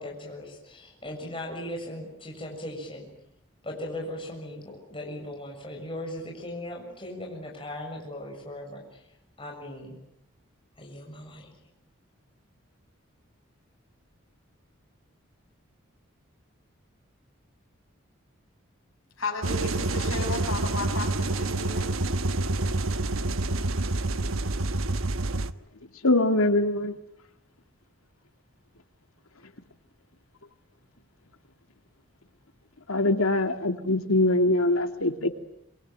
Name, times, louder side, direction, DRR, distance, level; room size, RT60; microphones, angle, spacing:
voice 1, 0.0-3.1 3.6-9.0 9.4-10.0 10.8-11.5, left 1 dB, 25° left, 0 dB, 6.9 m, -38 dB
voice 2, 19.2-21.9, left 3 dB, 70° left, 3 dB, 7.6 m, -34 dB
sound 1, 19.4-25.5, right 2 dB, 80° right, 1.1 m, -27 dB
voice 3, 26.0-26.9 32.9-35.3, left 2 dB, 90° left, 6 dB, 2.6 m, -23 dB
27.0 x 23.5 x 9.3 m, 0.77 s
head